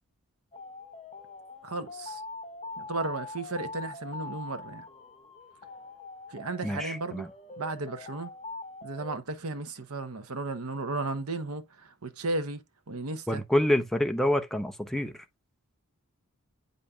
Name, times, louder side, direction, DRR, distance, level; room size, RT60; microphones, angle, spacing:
sound 1, 0.5-9.2, left 3 dB, 30° left, 1.0 m, -43 dB
voice 1, 1.6-2.2 2.8-4.8 6.3-7.3 7.6-8.3 8.8-12.6 12.9-13.4, right 2 dB, 80° right, 1.0 m, -34 dB
voice 2, 6.6-7.3 13.3-15.2, left 1 dB, ahead, 0.7 m, -27 dB
8.4 x 5.2 x 2.5 m
head